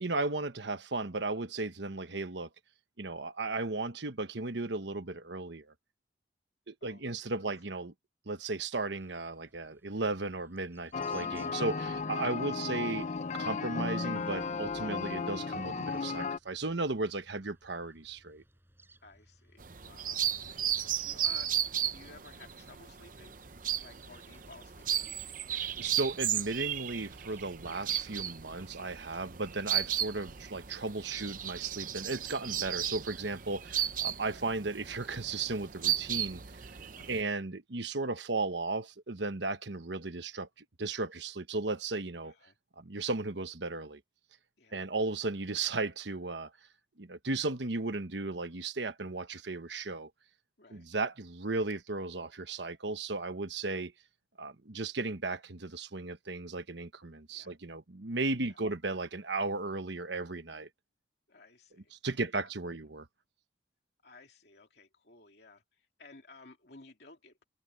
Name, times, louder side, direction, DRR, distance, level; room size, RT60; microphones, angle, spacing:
voice 1, 0.0-2.5 3.0-5.7 6.7-7.9 8.3-13.1 13.3-18.4 25.5-36.4 37.1-42.3 42.8-44.0 44.7-46.5 47.0-50.1 50.7-53.9 54.4-60.7 62.0-63.0, right 3 dB, 70° right, 1.2 m, -35 dB
sound 1, 9.0-28.8, right 1 dB, 10° right, 7.0 m, -65 dB
sound 2, 10.9-16.4, left 4 dB, 40° left, 0.5 m, -35 dB
voice 2, 12.4-13.2 19.0-21.6 21.9-23.4 23.8-25.4 37.0-37.2 42.2-42.6 44.6-44.9 50.6-50.9 57.3-57.6 58.4-58.6 61.3-62.8 64.0-67.4, left 3 dB, 60° left, 2.7 m, -56 dB
sound 3, 19.6-37.2, right 10 dB, 45° right, 0.7 m, -35 dB
head